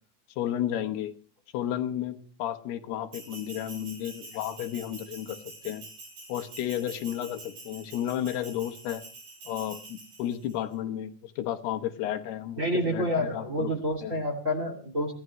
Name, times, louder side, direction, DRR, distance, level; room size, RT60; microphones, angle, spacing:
voice 1, 0.4-1.1 1.5-5.4 5.6-5.9 6.3-9.0 9.5-13.7 14.0-14.1, left 11 dB, 80° left, 7 dB, 3.2 m, -32 dB
Bell, 3.1-10.5, right 3 dB, 80° right, 9.0 m, -46 dB
voice 2, 12.6-15.1, equal, 25° right, 2 dB, 2.4 m, -28 dB
23.0 x 16.5 x 3.1 m, 0.38 s
omnidirectional pair, 4.5 m